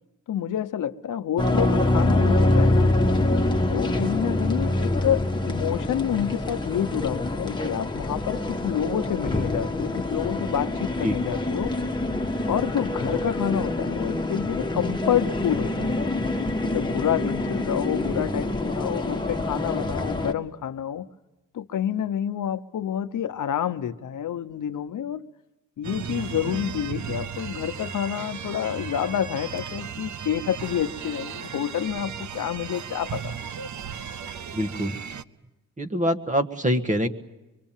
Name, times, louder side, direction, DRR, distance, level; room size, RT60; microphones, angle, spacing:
voice 1, 0.3-2.9 3.6-11.7 12.5-16.0 16.6-21.1 21.5-25.3 25.8-33.4, left 10 dB, 70° left, 0.9 m, -28 dB
sound 1, 1.4-20.3, left 2 dB, 15° left, 1.6 m, -25 dB
sound 2, 25.8-35.2, right 7 dB, 65° right, 0.9 m, -35 dB
voice 2, 34.5-35.0 35.8-37.1, equal, 25° right, 1.5 m, -24 dB
24.5 x 24.0 x 7.3 m
wide cardioid pair, 125°, 32 cm